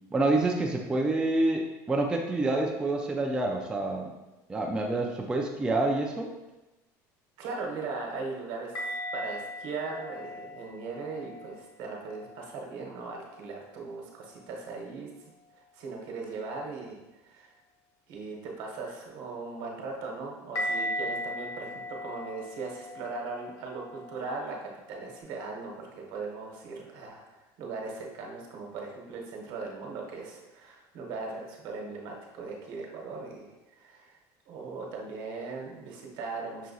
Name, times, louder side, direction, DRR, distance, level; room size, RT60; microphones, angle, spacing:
voice 1, 0.1-4.1 4.5-6.3, right 2 dB, 10° right, 0 dB, 0.3 m, -27 dB
voice 2, 7.4-8.7 9.1-15.1 15.7-17.0 17.2-17.5 18.1-34.2 34.5-36.7, right 4 dB, 65° right, 0 dB, 1.0 m, -39 dB
sound 1, 8.7-12.7 13.0-13.6 20.5-25.2, equal, 45° left, 0.9 m, -38 dB
5.8 x 2.7 x 2.7 m, 1.0 s
cardioid pair, 150°, 8 cm